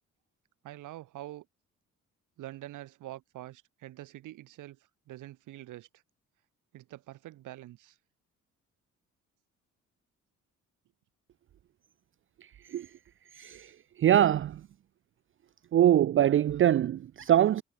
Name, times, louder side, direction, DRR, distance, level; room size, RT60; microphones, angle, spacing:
voice 1, 0.6-1.5 2.4-4.8 5.1-5.9 6.7-8.0, right 15 dB, 85° right, 4.9 m, -45 dB
voice 2, 14.0-14.6 15.7-17.6, right 11 dB, 45° right, 0.5 m, -23 dB
cardioid pair, 90°, 30 cm